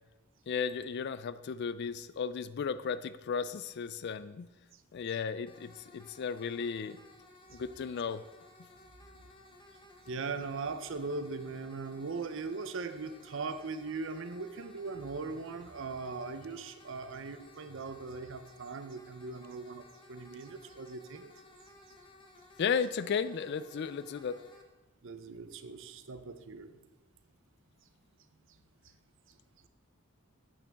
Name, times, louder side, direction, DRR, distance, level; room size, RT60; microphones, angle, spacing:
voice 1, 0.5-4.5 4.9-7.0 7.5-8.2 22.6-24.4, left 6 dB, 50° left, 15 dB, 0.3 m, -34 dB
sound 1, 5.5-24.6, left 2 dB, 25° left, 0.9 m, -57 dB
voice 2, 10.1-21.3 25.0-26.8, right 4 dB, 60° right, 10 dB, 0.6 m, -40 dB
8.6 x 8.5 x 3.5 m, 1.1 s
head